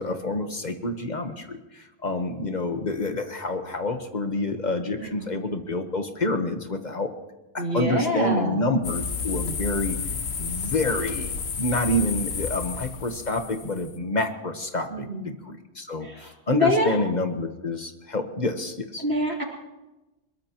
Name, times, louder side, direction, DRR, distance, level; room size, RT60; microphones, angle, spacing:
voice 1, 0.0-7.1 7.5-10.0 10.4-19.0, left 2 dB, 45° left, 6 dB, 1.3 m, -28 dB
voice 2, 4.9-5.3 7.6-8.6 14.9-15.3 16.0-17.0 19.0-19.4, left 1 dB, 75° right, -1 dB, 3.3 m, -25 dB
sound 1, 8.8-14.0, left 5 dB, 85° left, 1.3 m, -31 dB
22.0 x 21.5 x 3.0 m, 1.0 s
omnidirectional pair, 1.1 m